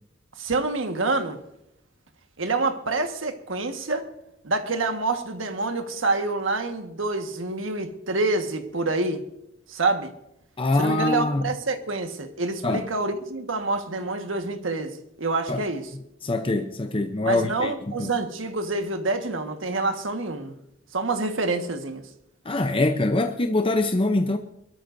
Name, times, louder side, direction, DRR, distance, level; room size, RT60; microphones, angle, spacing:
voice 1, 0.4-1.4 2.4-4.1 4.4-9.2 9.7-10.1 10.8-15.9 17.2-20.5 20.9-22.0, right 3 dB, 75° right, 1.6 m, -27 dB
voice 2, 10.6-11.5 12.6-12.9 15.5-15.6 16.2-17.7 18.0-18.1 22.5-24.4, left 2 dB, 25° left, 0.7 m, -23 dB
24.0 x 13.5 x 2.7 m
head